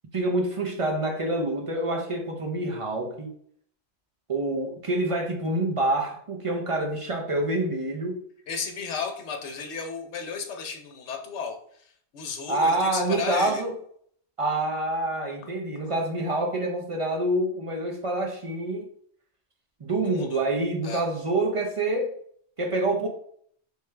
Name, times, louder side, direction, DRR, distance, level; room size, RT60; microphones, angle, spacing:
voice 1, 0.1-3.3 4.3-8.2 12.5-13.7 14.4-18.9 19.8-22.1 22.6-23.1, right 2 dB, 40° right, 1 dB, 0.5 m, -27 dB
voice 2, 8.5-13.6 20.1-20.4 20.8-21.0, left 5 dB, 75° left, 4 dB, 1.0 m, -34 dB
3.4 x 3.2 x 3.2 m, 0.62 s
omnidirectional pair, 1.2 m